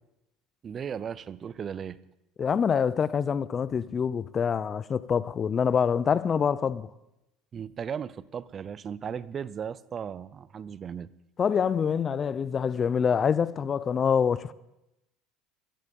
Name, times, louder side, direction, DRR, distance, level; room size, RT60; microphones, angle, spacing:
voice 1, 0.6-2.0 7.5-11.1, right 7 dB, 35° right, 0.6 m, -36 dB
voice 2, 2.4-6.9 11.4-14.5, left 7 dB, 35° left, 0.6 m, -26 dB
18.0 x 13.5 x 5.3 m
supercardioid pair, 100°, 0 cm